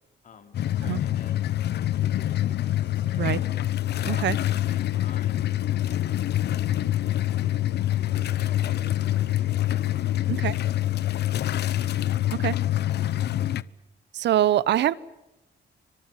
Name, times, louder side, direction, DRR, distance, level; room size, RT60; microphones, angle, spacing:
voice 1, 0.2-1.6 2.0-3.5 4.0-5.5 7.4-7.5 8.1-9.8 10.1-10.4 11.3-11.7, left 6 dB, 50° left, 6 dB, 4.1 m, -47 dB
sound 1, 0.5-13.6, left 13 dB, 70° left, 0.9 m, -26 dB
voice 2, 4.1-4.4 10.3-10.6 12.3-12.5 14.1-14.9, right 12 dB, 85° right, 19 dB, 1.0 m, -23 dB
30.0 x 24.5 x 7.5 m, 0.94 s
wide cardioid pair, 165°, 18 cm